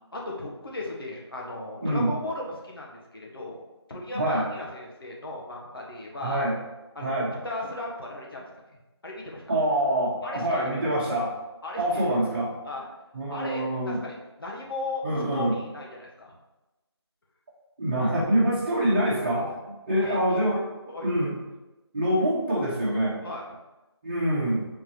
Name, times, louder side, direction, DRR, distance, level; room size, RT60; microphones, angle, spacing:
voice 1, 0.1-6.4 6.9-7.1 7.4-8.5 8.7-9.5 10.2-10.7 11.6-12.1 12.6-12.8 13.3-15.0 15.3-16.3 20.0-20.4 20.9-21.2 23.2-23.5, left 2 dB, 55° left, -3 dB, 1.5 m, -36 dB
voice 2, 4.1-4.4 6.2-6.5 7.0-7.3 9.5-11.3 11.8-12.5 13.1-14.0 15.0-15.6 17.8-20.6 21.0-21.3 21.9-23.1 24.0-24.7, right 1 dB, 20° right, -8 dB, 1.5 m, -25 dB
7.3 x 4.6 x 3.0 m, 1.0 s
figure-of-eight pair, 165°, 14 cm